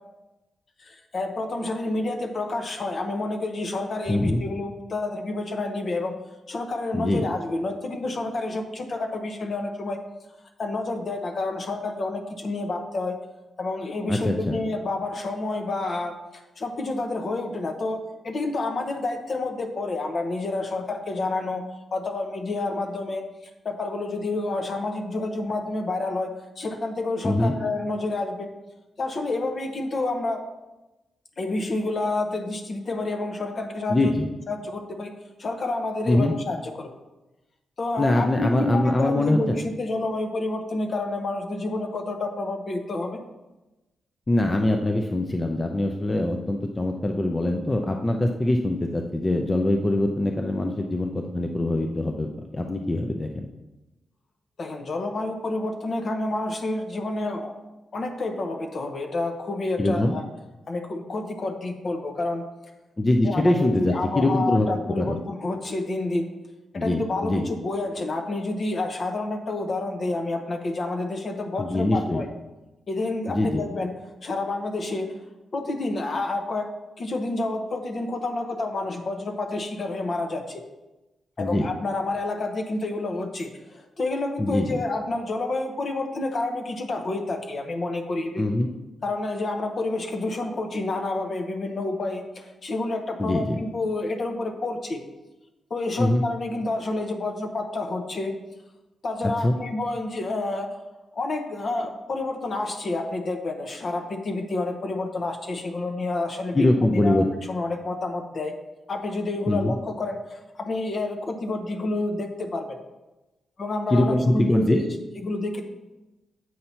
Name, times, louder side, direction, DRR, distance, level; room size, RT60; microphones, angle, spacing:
voice 1, 0.8-6.1 6.5-10.0 10.6-13.2 13.6-16.1 16.6-18.0 18.2-21.6 21.9-23.2 23.6-26.3 26.6-28.5 29.0-30.4 31.4-34.1 34.5-35.1 35.4-36.9 37.8-43.2 54.6-57.5 57.9-60.2 60.7-62.4 63.2-66.3 66.7-72.3 72.9-73.9 74.2-75.1 75.5-76.7 77.0-80.6 81.4-88.4 89.0-95.0 95.7-98.3 99.0-100.7 101.1-106.6 106.9-108.5 108.9-112.6 113.6-114.9 115.2-115.6, left 2 dB, 50° left, 5 dB, 0.9 m, -29 dB
voice 2, 4.1-4.4 6.9-7.2 14.1-14.6 27.2-27.6 33.9-34.3 36.1-36.4 38.0-39.6 44.3-53.5 59.8-60.2 63.0-64.7 65.0-65.2 66.7-67.4 71.6-72.2 73.3-73.6 81.4-81.7 84.4-84.8 88.4-88.7 93.2-93.6 96.0-96.2 99.2-99.5 106.5-107.2 109.5-109.8 113.9-114.8, left 1 dB, 25° left, 3 dB, 0.5 m, -23 dB
7.7 x 2.8 x 5.6 m, 1.0 s
cardioid pair, 75°, 0 cm